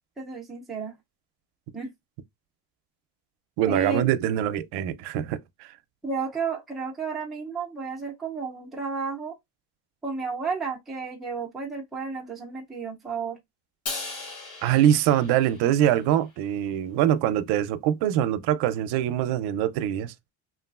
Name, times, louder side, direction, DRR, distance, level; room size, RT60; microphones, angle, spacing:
voice 1, 0.2-1.0 1.7-1.9 3.7-4.0 6.0-9.4 10.0-13.4, right 5 dB, ahead, 0.4 m, -32 dB
voice 2, 3.6-5.7 14.6-20.1, right 11 dB, 80° right, 0.5 m, -24 dB
Crash cymbal, 13.9-16.2, left 3 dB, 45° left, 0.9 m, -38 dB
3.0 x 2.3 x 2.3 m
cardioid pair, 180°, 39 cm